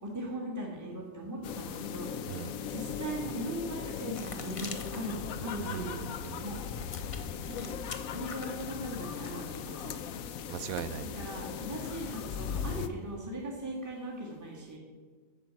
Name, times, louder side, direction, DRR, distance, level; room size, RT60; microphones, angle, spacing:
voice 1, 0.0-6.0 6.4-6.6 7.4-10.0 11.1-14.8, right 1 dB, 15° right, -3 dB, 1.7 m, -39 dB
sound 1, 1.4-12.9, left 7 dB, 90° left, 1.1 m, -38 dB
voice 2, 2.3-2.6 5.6-6.4 10.5-11.2, right 10 dB, 85° right, 14 dB, 1.0 m, -39 dB
sound 2, 3.8-9.5, left 4 dB, 35° left, 0.6 m, -48 dB
8.6 x 6.7 x 7.5 m, 1.5 s
omnidirectional pair, 1.4 m